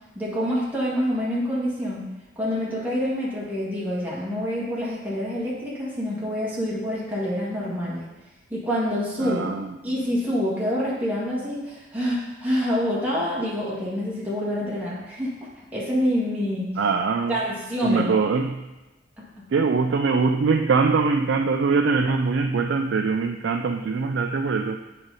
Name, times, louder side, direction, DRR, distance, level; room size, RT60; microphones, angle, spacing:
voice 1, 0.1-2.0 2.3-8.0 8.5-9.5 9.8-15.3 15.7-16.7 17.3-18.2 19.2-19.3, equal, 10° right, -7 dB, 1.8 m, -26 dB
voice 2, 9.2-9.7 16.8-17.4 17.8-18.6 19.5-24.8, right 4 dB, 65° right, 4 dB, 0.4 m, -22 dB
7.9 x 5.0 x 4.0 m, 1.1 s
head